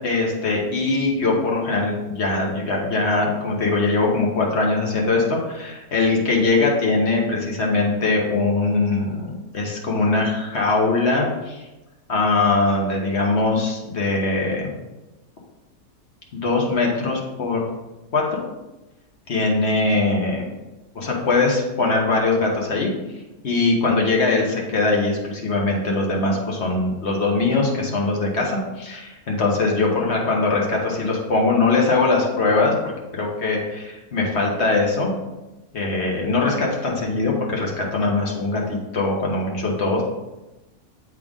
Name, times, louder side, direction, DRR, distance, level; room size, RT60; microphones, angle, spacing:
voice 1, 0.0-11.6 12.1-14.7 16.3-17.6 18.1-18.4 19.3-20.5 20.9-22.9 23.4-32.7 33.1-35.1 35.7-40.0, left 3 dB, 50° left, -1 dB, 1.3 m, -21 dB
7.6 x 3.6 x 3.7 m, 1.0 s
omnidirectional pair, 1.6 m